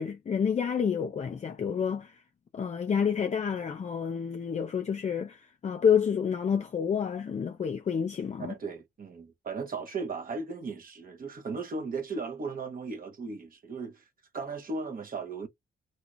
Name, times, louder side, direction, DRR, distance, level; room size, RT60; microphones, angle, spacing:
voice 1, 0.0-2.2 2.5-8.5, left 7 dB, 40° left, 0.5 m, -29 dB
voice 2, 8.4-14.0 14.3-15.5, right 4 dB, 55° right, 1.3 m, -36 dB
3.0 x 2.8 x 2.5 m
cardioid pair, 65°, 18 cm